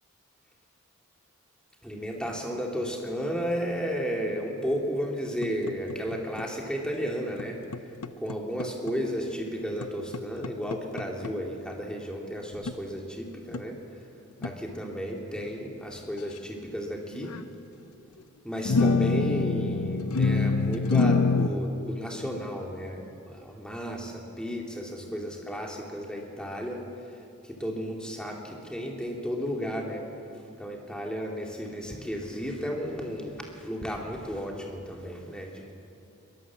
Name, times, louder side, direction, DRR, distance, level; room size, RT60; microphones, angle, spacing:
voice 1, 1.8-7.6 8.2-13.8 14.4-17.4 18.4-26.8 27.4-30.0 30.6-35.7, equal, 5° left, -1 dB, 2.5 m, -33 dB
sound 1, 5.4-6.5 7.4-7.5 7.7-8.9 9.8-11.3 12.5-12.7 13.5-13.6 14.4-14.5 17.1-17.4 18.6-21.5, left 4 dB, 90° left, 0.8 m, -25 dB
22.5 x 19.0 x 7.4 m, 2.8 s
head